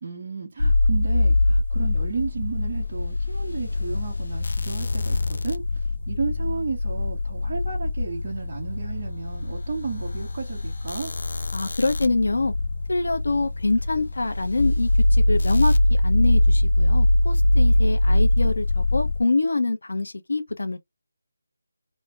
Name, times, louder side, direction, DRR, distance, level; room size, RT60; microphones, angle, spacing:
voice 1, 0.0-5.6 6.1-11.1, right 5 dB, 25° right, 1.2 m, -33 dB
sound 1, 0.6-19.2, left 1 dB, 45° left, 0.4 m, -23 dB
voice 2, 11.5-12.5 12.9-20.8, left 3 dB, 70° left, 0.8 m, -25 dB
3.2 x 2.1 x 3.4 m
figure-of-eight pair, 180°, 0 cm